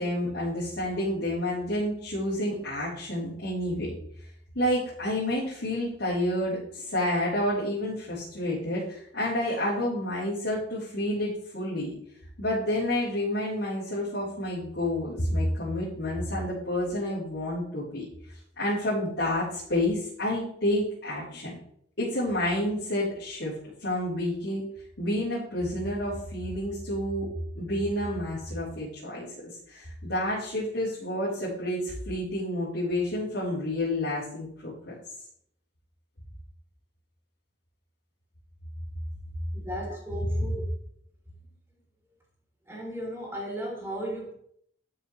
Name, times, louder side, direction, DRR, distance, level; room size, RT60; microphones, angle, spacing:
voice 1, 0.0-3.9 4.5-11.9 12.4-18.1 18.6-21.5 22.0-23.5 23.8-24.6 25.0-27.3 27.6-34.9, left 1 dB, 80° left, -10 dB, 3.9 m, -29 dB
voice 2, 39.5-40.6 42.7-44.3, equal, 15° right, -4 dB, 3.6 m, -35 dB
12.0 x 6.9 x 3.2 m, 0.67 s
head